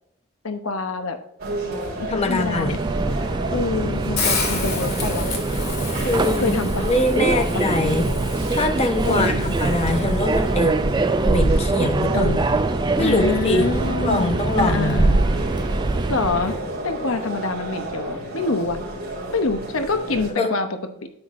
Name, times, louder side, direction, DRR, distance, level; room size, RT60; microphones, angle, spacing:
voice 1, 0.4-1.2 2.0-2.8 3.5-5.3 6.4-6.8 7.2-7.6 9.0-9.5 12.1-12.4 13.0-15.2 16.1-16.5 16.8-18.8 19.3-20.7, left 3 dB, 80° left, 7 dB, 0.9 m, -26 dB
sound 1, 1.4-20.3, right 1 dB, 45° right, 3.2 m, -32 dB
voice 2, 2.1-2.8 6.0-8.1 8.5-10.8 11.2-12.4 13.0-13.7 14.0-15.2 16.5-16.6 20.4-20.5, left 2 dB, 30° left, 5 dB, 1.0 m, -23 dB
Subway metro underground, 2.2-16.6, right 2 dB, 20° right, 0.4 m, -23 dB
Hiss, 4.2-10.2, left 4 dB, 50° left, 2.1 m, -31 dB
9.8 x 7.9 x 2.6 m, 0.76 s
head